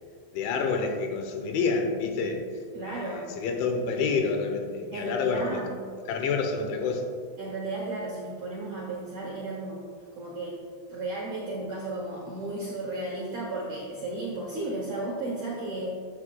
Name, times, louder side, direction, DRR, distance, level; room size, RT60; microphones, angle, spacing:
voice 1, 0.3-2.4 2.8-5.6 6.1-7.0, left 4 dB, 80° left, 3 dB, 3.2 m, -28 dB
voice 2, 2.7-3.3 4.9-5.7 7.4-9.8 10.2-10.6 10.9-15.9, right 2 dB, 70° right, -4 dB, 1.8 m, -34 dB
13.5 x 8.7 x 2.3 m, 2.1 s
omnidirectional pair, 5.5 m